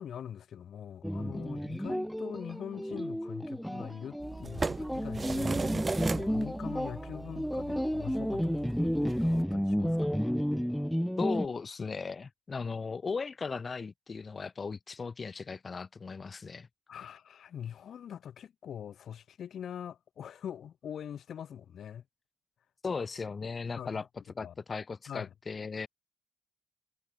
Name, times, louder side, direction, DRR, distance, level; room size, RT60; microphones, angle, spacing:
voice 1, 0.0-10.3 16.9-22.0 23.8-24.1 24.4-24.5 25.1-25.3, left 9 dB, 60° left, 7.5 m, -43 dB
sound 1, 1.0-11.5, equal, ahead, 1.8 m, -32 dB
sound 2, 4.2-9.4, right 3 dB, 25° right, 1.2 m, -37 dB
voice 2, 11.2-16.7 22.8-24.0 24.4-25.9, left 4 dB, 35° left, 4.1 m, -37 dB
cardioid pair, 90°, 0 cm